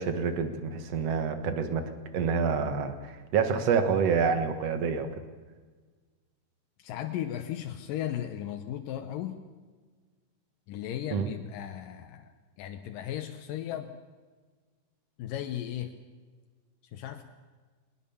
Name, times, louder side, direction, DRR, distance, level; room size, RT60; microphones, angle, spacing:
voice 1, 0.0-5.1 11.1-11.3, right 6 dB, 55° right, 9 dB, 2.3 m, -28 dB
voice 2, 6.8-9.4 10.7-12.3 12.6-13.9 15.2-15.9 16.9-17.2, left 11 dB, 85° left, 6 dB, 2.6 m, -36 dB
20.0 x 20.0 x 7.0 m, 1.4 s
omnidirectional pair, 3.8 m